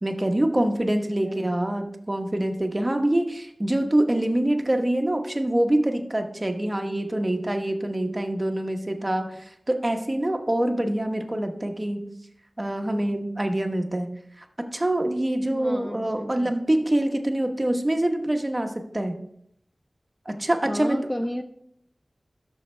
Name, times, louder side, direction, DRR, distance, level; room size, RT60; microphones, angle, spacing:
voice 1, 0.0-12.1 12.6-14.1 14.4-19.2 20.3-21.0, right 1 dB, 25° right, 5 dB, 1.0 m, -25 dB
voice 2, 0.6-1.5 15.5-16.5 20.7-21.4, equal, 5° left, 6 dB, 0.5 m, -33 dB
13.0 x 6.4 x 3.3 m, 0.72 s
wide cardioid pair, 65°, 0 cm